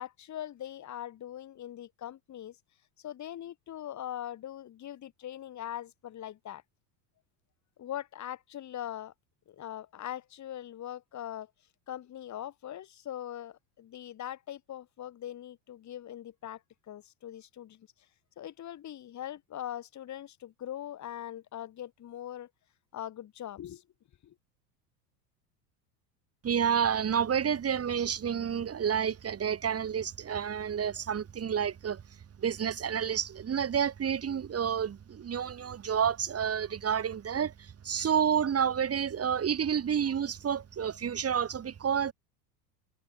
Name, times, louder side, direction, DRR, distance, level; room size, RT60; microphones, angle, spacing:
voice 1, 0.0-2.6 3.0-6.6 7.8-9.1 9.5-11.5 11.9-16.6 16.9-17.9 18.4-22.5 22.9-23.8 24.2-24.3, left 11 dB, 35° left, 2.6 m, -41 dB
voice 2, 26.4-32.0 32.4-42.1, right 8 dB, 30° right, 4.1 m, -29 dB
hypercardioid pair, 90°, 47 cm